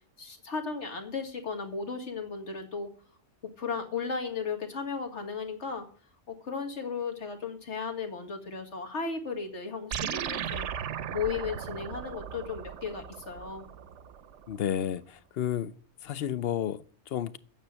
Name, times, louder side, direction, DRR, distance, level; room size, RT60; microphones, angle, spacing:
voice 1, 0.2-2.9 3.6-5.9 6.3-10.7 11.1-13.7, left 5 dB, 80° left, 2.2 m, -35 dB
sound 1, 9.9-14.6, right 8 dB, 90° right, 1.0 m, -37 dB
voice 2, 14.5-15.7 16.0-17.4, left 10 dB, 60° left, 0.9 m, -31 dB
9.2 x 7.2 x 9.0 m
omnidirectional pair, 1.2 m